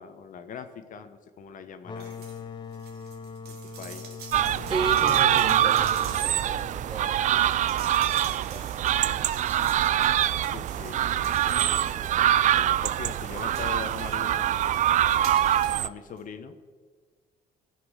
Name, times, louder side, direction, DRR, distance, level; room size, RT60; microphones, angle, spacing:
voice 1, 0.0-2.3 3.4-4.2 10.4-14.8 15.8-16.6, left 7 dB, 50° left, 9 dB, 0.9 m, -42 dB
sound 1, 1.8-7.3, left 6 dB, 25° left, 0.7 m, -41 dB
sound 2, 2.0-2.4 2.7-12.5 12.9-15.8 16.2-16.3, right 6 dB, 75° right, 2.0 m, -46 dB
sound 3, 4.3-15.9, right 11 dB, 50° right, 0.4 m, -24 dB
voice 2, 4.7-9.0, right 4 dB, 30° right, 6 dB, 1.5 m, -36 dB
15.5 x 6.0 x 6.3 m, 1.5 s
cardioid pair, 110°, 17 cm